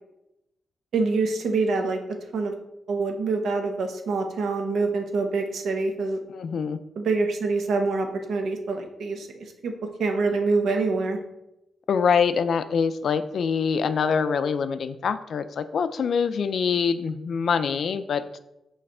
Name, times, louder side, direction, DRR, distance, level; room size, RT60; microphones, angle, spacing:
voice 1, 0.9-2.5 2.9-6.2 7.0-9.3 9.6-9.7 10.0-11.2, right 3 dB, 80° right, 4 dB, 0.9 m, -25 dB
voice 2, 6.3-6.8 11.9-18.4, left 6 dB, 60° left, 11 dB, 0.4 m, -24 dB
6.5 x 3.2 x 5.5 m, 0.88 s
wide cardioid pair, 160°, 0 cm